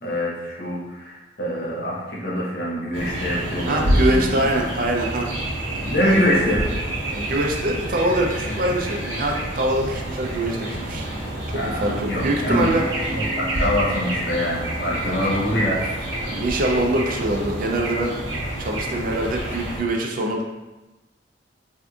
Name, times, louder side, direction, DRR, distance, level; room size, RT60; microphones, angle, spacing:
voice 1, 0.0-4.4 5.8-6.8 11.5-12.6 13.1-15.7, left 1 dB, 55° left, -5 dB, 0.8 m, -24 dB
sound 1, 2.9-19.8, right 1 dB, 75° right, 0.7 m, -28 dB
voice 2, 3.7-5.3 6.0-6.4 7.1-12.8 15.0-15.2 16.2-18.2 18.6-20.4, right 1 dB, 50° right, 1 dB, 0.4 m, -24 dB
3.4 x 2.7 x 2.3 m, 1.1 s
head